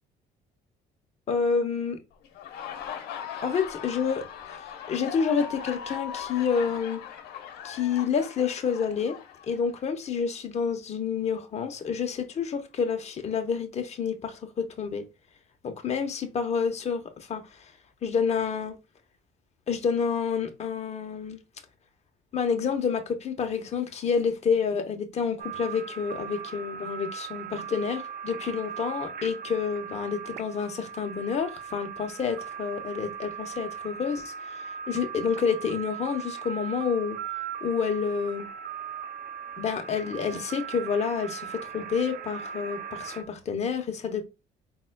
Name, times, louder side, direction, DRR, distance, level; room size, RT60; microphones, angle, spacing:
voice 1, 1.3-2.0 3.4-7.0 7.6-9.2 9.5-15.0 15.6-17.7 18.0-18.8 19.7-21.4 22.3-34.3 34.9-37.2 37.6-38.5 39.6-44.2, left 6 dB, 40° left, 0.9 m, -29 dB
Laughter, 2.2-9.9, left 8 dB, 75° left, 0.9 m, -39 dB
sound 1, 25.4-43.2, right 7 dB, 60° right, 0.7 m, -39 dB
4.4 x 4.0 x 2.2 m
cardioid pair, 110°, 17 cm